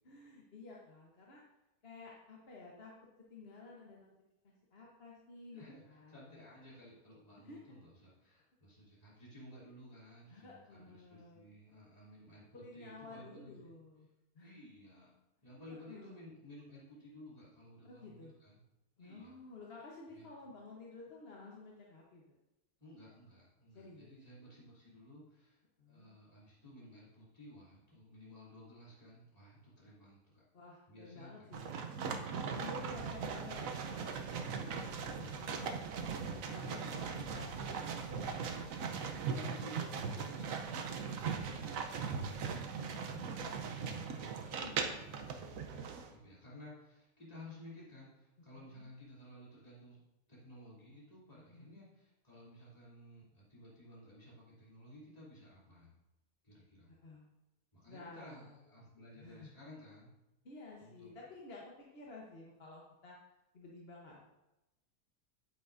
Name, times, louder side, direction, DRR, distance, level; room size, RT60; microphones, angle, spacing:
voice 1, 0.0-1.4 1.8-2.9 3.3-4.1 4.4-6.5 7.4-7.8 10.3-11.5 12.5-14.1 14.3-14.6 15.7-16.2 17.8-18.3 19.0-22.4 23.7-24.2 25.8-26.1 30.5-31.7 32.6-36.1 36.5-39.8 43.1-43.9 44.5-45.0 48.5-48.9 51.3-51.8 56.9-57.3 57.9-58.6 59.2-59.5 60.4-63.2 63.5-64.3, left 3 dB, 45° left, -3 dB, 1.2 m, -53 dB
voice 2, 5.5-13.7 14.4-15.1 15.4-18.6 19.0-19.3 20.1-20.3 22.8-25.6 25.9-30.4 30.9-31.5 32.4-32.8 36.7-37.4 39.3-55.9 56.4-56.9 57.7-60.1 60.8-61.1, left 1 dB, 25° left, -8 dB, 3.0 m, -55 dB
sound 1, 31.5-46.1, right 6 dB, 65° right, 1.1 m, -39 dB
9.2 x 8.5 x 2.6 m, 0.95 s
omnidirectional pair, 1.6 m